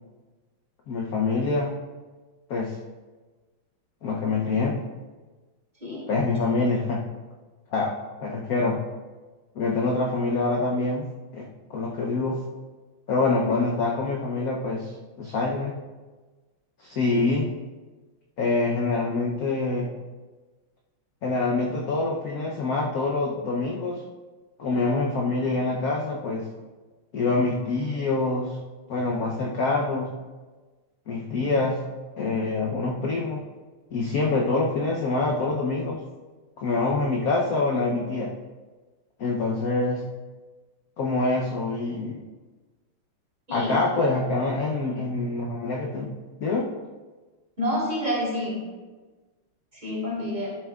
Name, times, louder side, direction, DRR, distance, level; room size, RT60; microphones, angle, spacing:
voice 1, 0.9-1.7 2.5-2.8 4.0-4.8 6.1-7.0 7.7-7.9 8.2-8.8 9.5-11.1 11.3-12.4 13.1-14.9 15.2-15.8 16.8-17.5 18.4-19.9 21.2-24.0 24.6-26.5 27.1-28.6 28.9-30.1 31.1-31.8 32.2-33.4 33.9-36.0 36.6-38.3 39.2-40.0 41.0-42.2 43.5-46.1 46.4-46.7, left 3 dB, 60° left, -1 dB, 1.0 m, -25 dB
voice 2, 47.6-48.6 49.7-50.5, left 1 dB, 20° right, -7 dB, 3.2 m, -28 dB
12.0 x 8.0 x 2.4 m, 1.3 s
omnidirectional pair, 2.3 m